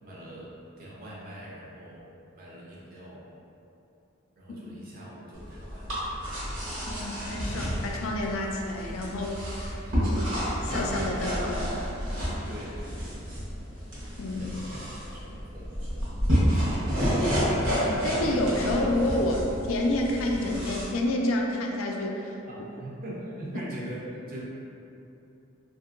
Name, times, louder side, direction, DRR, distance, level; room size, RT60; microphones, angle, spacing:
voice 1, 0.0-2.0 2.3-3.3 4.4-6.0 9.8-10.3 12.4-13.3 14.4-16.8 22.5-24.4, right 1 dB, 45° right, -5 dB, 0.6 m, -43 dB
sound 1, 5.3-20.8, equal, 70° right, 1.0 m, -30 dB
voice 2, 6.9-10.2 10.6-11.8 14.2-14.5 17.4-17.5 17.8-22.3, left 1 dB, 80° left, 1 dB, 0.4 m, -29 dB
2.8 x 2.6 x 2.4 m, 2.8 s
head